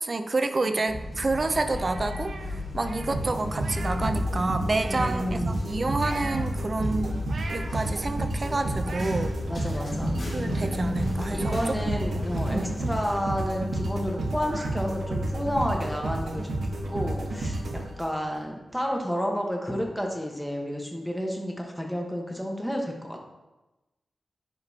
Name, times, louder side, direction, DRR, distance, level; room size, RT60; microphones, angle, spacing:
voice 1, 0.0-7.1 7.5-9.4 10.3-11.8 12.5-12.7, right 2 dB, 35° right, 9 dB, 0.5 m, -29 dB
sound 1, 0.9-13.2, left 2 dB, 50° left, 2.0 m, -34 dB
sound 2, 1.6-4.1 4.4-5.4 5.9-6.5 7.0-8.0 8.5-9.3 9.8-9.9 10.1-11.0 11.3-12.9 13.2-13.3 13.7-13.8 14.1-14.7, right 3 dB, 65° right, 0.7 m, -42 dB
sound 3, 3.1-18.4, right 1 dB, 80° right, 1.1 m, -31 dB
voice 2, 4.9-5.6 9.5-10.2 11.3-23.2, equal, ahead, 1 dB, 1.1 m, -31 dB
10.5 x 5.3 x 2.8 m, 1.1 s
wide cardioid pair, 120°, 0 cm